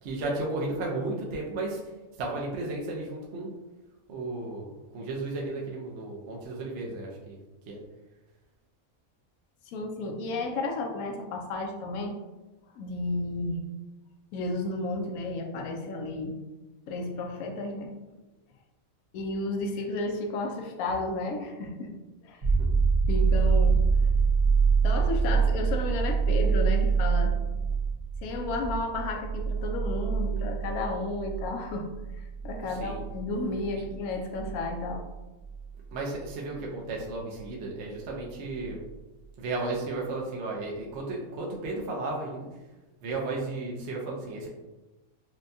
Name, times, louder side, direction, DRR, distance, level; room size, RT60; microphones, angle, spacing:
voice 1, 0.0-1.8 2.2-3.5 4.1-4.7 4.9-7.4 7.7-7.8 32.7-33.0 35.9-38.8 39.4-42.5 43.0-44.5, right 2 dB, 60° right, -2 dB, 0.9 m, -34 dB
voice 2, 9.7-12.1 12.8-13.6 14.3-16.4 16.9-17.9 19.1-21.9 22.2-22.4 23.1-23.8 24.8-27.3 28.2-31.9 32.4-35.0, left 2 dB, 80° left, 2 dB, 1.1 m, -32 dB
sound 1, 22.4-35.9 38.6-38.7, right 5 dB, 80° right, 1.6 m, -26 dB
6.1 x 2.2 x 2.6 m, 1.1 s
omnidirectional pair, 1.5 m